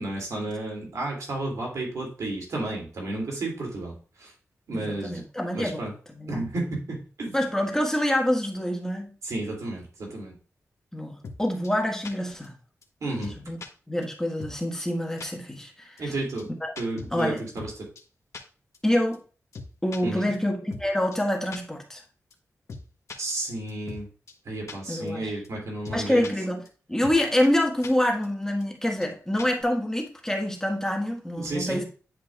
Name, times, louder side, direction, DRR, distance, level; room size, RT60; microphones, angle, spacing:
voice 1, 0.0-3.9 4.2-4.3 4.7-5.2 5.5-5.9 6.3-7.4 9.2-10.3 13.0-13.3 16.0-16.5 16.8-17.7 20.0-20.3 23.2-24.1 24.4-26.3 31.4-31.8, right 2 dB, 90° right, -1 dB, 3.0 m, -32 dB
voice 2, 4.7-6.4 7.3-9.1 10.9-12.5 13.1-13.2 13.5-13.6 13.9-16.0 16.6-16.7 17.1-17.4 18.8-19.2 19.8-22.0 24.9-25.4 25.9-26.6 26.9-31.8, left 1 dB, 10° left, 1 dB, 1.6 m, -26 dB
sound 1, 11.2-11.4 11.6-11.7 12.0-12.1 12.4-12.5 12.8-12.9 13.2-13.7 14.0-14.1 14.4-14.5 14.8-14.9 15.2-15.3 15.6-15.7 16.0-16.1 16.4-16.5 16.8-17.7 18.0-18.1 18.3-18.4 18.7-18.8 19.1-19.2 19.5-20.0 20.3-20.4 20.7-20.8 21.1-21.2 21.5-21.6 21.9-22.0 22.3-22.4 22.7-22.8 23.1-24.0 24.3-24.4 24.7-24.8 25.1-25.2 25.4-25.5 25.8-26.3 26.6-26.7 27.0-27.2 27.4-27.5 27.8-27.9 28.2-28.3 28.6-28.7 29.0-29.1 29.4-29.6, left 4 dB, 70° left, 1.3 m, -40 dB
10.5 x 5.3 x 2.5 m, 0.38 s
wide cardioid pair, 95°, 5 cm